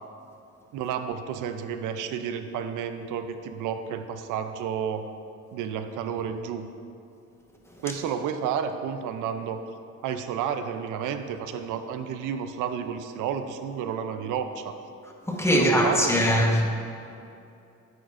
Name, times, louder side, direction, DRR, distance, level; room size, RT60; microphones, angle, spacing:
voice 1, 0.7-5.1 5.5-6.7 7.8-9.6 10.0-14.7 15.5-16.6, right 7 dB, 90° right, 8 dB, 0.5 m, -31 dB
voice 2, 15.3-16.6, equal, 10° left, 0 dB, 1.1 m, -21 dB
9.5 x 7.8 x 2.5 m, 2.6 s
cardioid pair, 90°, 30 cm